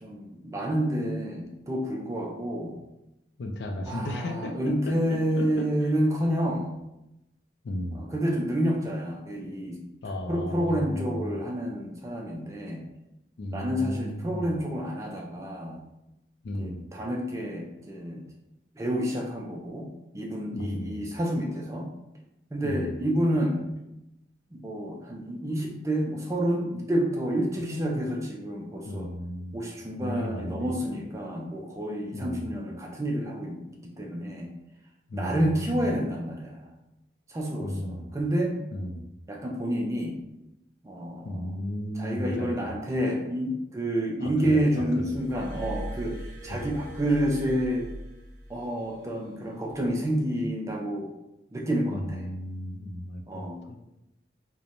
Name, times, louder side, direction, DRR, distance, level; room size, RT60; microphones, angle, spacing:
voice 1, 0.0-2.8 3.9-6.8 7.9-9.8 10.3-12.8 13.5-15.8 16.6-18.3 18.8-19.9 20.1-21.9 22.5-23.7 24.5-29.1 29.5-34.5 35.1-36.7 37.3-38.5 39.3-40.2 40.8-41.4 42.0-47.9 48.5-51.1 51.5-52.2 53.3-53.6, equal, 15° right, 0 dB, 0.3 m, -29 dB
voice 2, 3.4-5.7 7.6-8.0 10.0-11.4 13.4-14.6 16.4-16.8 20.5-21.0 22.6-23.0 27.6-28.0 28.8-29.5 30.0-30.8 32.1-32.5 35.1-35.9 37.6-38.1 38.7-39.0 41.2-42.8 44.2-45.2 46.5-46.8 51.9-53.9, left 1 dB, 65° left, 3 dB, 0.4 m, -35 dB
Glass, 45.1-48.7 49.7-49.9, right 1 dB, 45° right, 0.7 m, -40 dB
3.0 x 2.1 x 2.5 m, 0.91 s
head